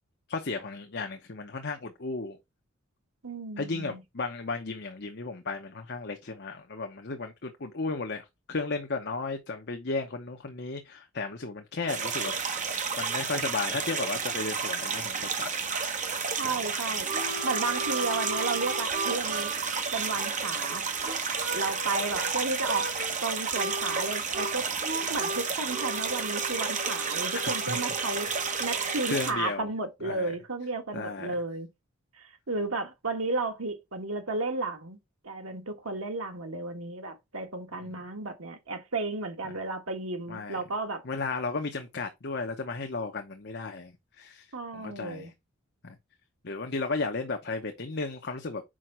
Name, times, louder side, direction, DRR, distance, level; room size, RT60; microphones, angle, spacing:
voice 1, 0.3-2.4 3.6-12.3 13.0-15.6 16.4-16.6 27.3-27.8 28.2-28.4 28.9-29.7 30.0-30.3 30.9-31.3 37.8-37.9 39.4-39.5 40.3-40.6 41.0-44.5 44.7-45.3 45.8-46.0 46.4-48.6, left 3 dB, 45° left, 0.8 m, -34 dB
voice 2, 3.2-4.0 16.4-17.1 17.4-19.5 19.9-20.8 21.5-22.9 23.2-24.7 25.1-28.3 28.6-31.7 32.2-35.0 35.2-41.0 44.5-45.3, right 3 dB, 70° right, 1.6 m, -33 dB
sound 1, 11.9-29.3, right 5 dB, 35° right, 1.1 m, -31 dB
Harmonica, 16.5-22.3 22.6-23.1 23.5-29.5, right 2 dB, 50° right, 2.3 m, -37 dB
6.3 x 5.1 x 4.4 m
head